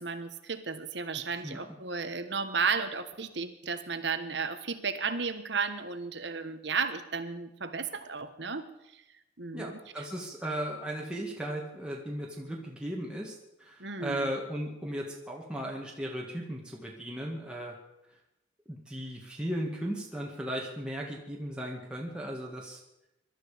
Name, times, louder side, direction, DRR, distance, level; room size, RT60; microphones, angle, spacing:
voice 1, 0.0-9.0 9.4-9.7 13.8-14.3, right 5 dB, 60° right, 10 dB, 1.3 m, -34 dB
voice 2, 9.5-13.3 13.6-17.7 18.7-22.8, right 1 dB, 5° right, -2 dB, 2.0 m, -36 dB
22.0 x 12.5 x 5.1 m, 0.89 s
head